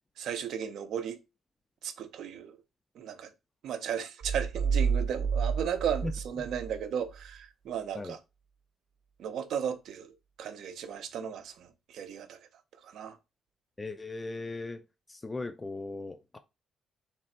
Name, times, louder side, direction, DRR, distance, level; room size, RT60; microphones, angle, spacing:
voice 1, 0.2-1.2 1.8-2.6 2.9-3.3 3.6-8.2 9.2-12.4 12.8-13.2, right 8 dB, 75° right, 0.6 m, -35 dB
sound 1, 4.2-6.8, right 6 dB, 50° right, 1.0 m, -30 dB
voice 2, 13.8-14.8 15.1-16.4, left 2 dB, 20° left, 0.4 m, -37 dB
3.3 x 3.3 x 4.2 m
cardioid pair, 90°, 0 cm